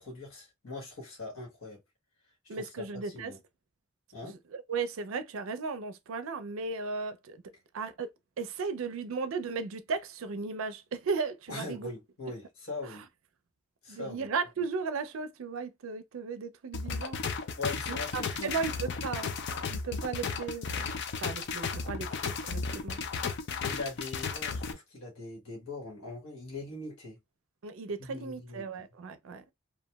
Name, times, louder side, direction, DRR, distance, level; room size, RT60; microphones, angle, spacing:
voice 1, 0.0-1.8 2.5-3.4 4.1-4.4 11.5-13.1 13.8-14.3 17.6-19.0 23.6-27.2 28.0-28.7, left 3 dB, 90° left, 1.2 m, -41 dB
voice 2, 2.5-3.3 4.5-7.4 7.7-8.1 8.4-11.9 13.9-17.2 17.9-19.3 19.7-20.9 21.2-23.0 27.6-29.5, right 4 dB, 80° right, 0.4 m, -35 dB
sound 1, 16.7-24.7, left 5 dB, 55° left, 0.4 m, -34 dB
2.9 x 2.2 x 2.2 m
head